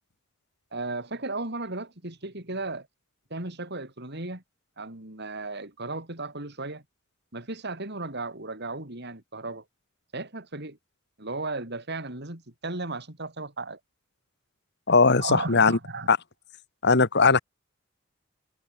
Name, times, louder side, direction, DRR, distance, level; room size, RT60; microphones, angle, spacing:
voice 1, 0.7-2.9 3.3-4.4 4.8-6.8 7.3-9.6 10.1-10.8 11.2-13.8 15.2-16.1, right 2 dB, 55° right, 4.7 m, -35 dB
voice 2, 14.9-15.8 16.1-16.2 16.8-17.4, left 4 dB, 60° left, 1.7 m, -19 dB
head